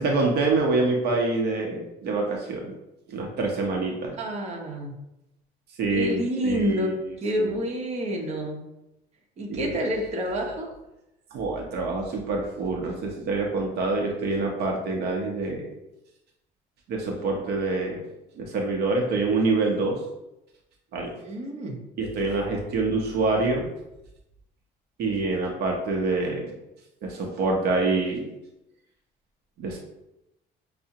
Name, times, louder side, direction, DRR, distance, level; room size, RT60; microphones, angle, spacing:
voice 1, 0.0-2.7 3.1-4.2 5.8-7.6 9.5-10.6 11.3-15.6 16.9-18.0 18.4-20.0 20.9-21.1 22.0-23.6 25.0-26.5 27.0-28.3 29.6-29.8, right 3 dB, 70° right, 0 dB, 0.7 m, -26 dB
voice 2, 4.1-4.9 5.9-8.6 9.4-10.7 21.2-21.8, equal, 40° right, 0 dB, 0.8 m, -28 dB
5.6 x 2.0 x 2.7 m, 0.91 s
cardioid pair, 110°, 17 cm